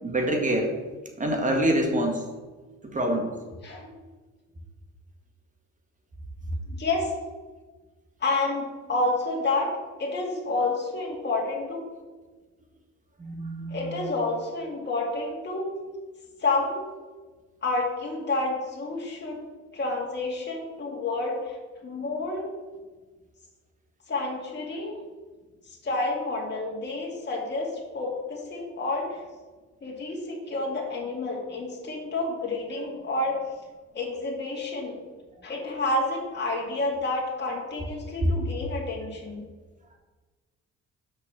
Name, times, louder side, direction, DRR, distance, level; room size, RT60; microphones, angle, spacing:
voice 1, 0.0-0.7 1.2-2.2 2.9-3.3 13.2-14.1, right 1 dB, 25° right, 2 dB, 1.9 m, -26 dB
voice 2, 3.6-4.1 6.7-7.1 8.2-9.7 10.0-11.8 13.7-15.7 16.4-16.8 17.6-19.4 19.7-21.6 21.8-22.5 24.1-25.0 25.8-29.2 29.8-33.4 33.9-34.9 35.4-39.4, left 2 dB, 35° left, -2 dB, 2.2 m, -29 dB
6.6 x 5.8 x 6.3 m, 1.3 s
cardioid pair, 90°, 30 cm